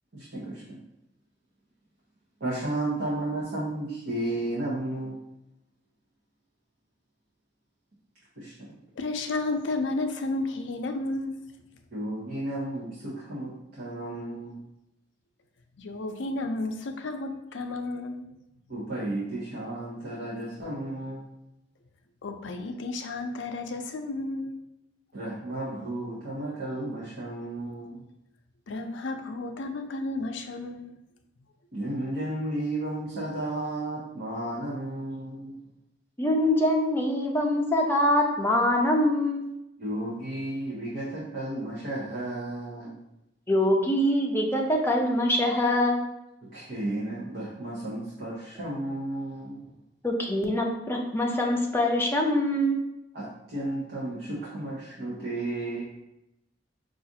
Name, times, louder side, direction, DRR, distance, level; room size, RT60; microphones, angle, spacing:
voice 1, 0.1-0.8 2.4-5.1 8.4-8.8 11.9-14.6 18.7-21.3 25.1-28.0 31.7-35.6 39.8-43.0 46.5-49.6 53.1-55.8, right 1 dB, 55° right, -7 dB, 0.8 m, -33 dB
voice 2, 9.0-11.4 15.8-18.3 22.2-24.6 28.7-31.0, left 2 dB, 80° left, 6 dB, 0.4 m, -32 dB
voice 3, 36.2-39.5 43.5-46.0 50.0-52.8, left 1 dB, 10° left, 0 dB, 0.5 m, -24 dB
4.8 x 2.4 x 2.7 m, 0.88 s
head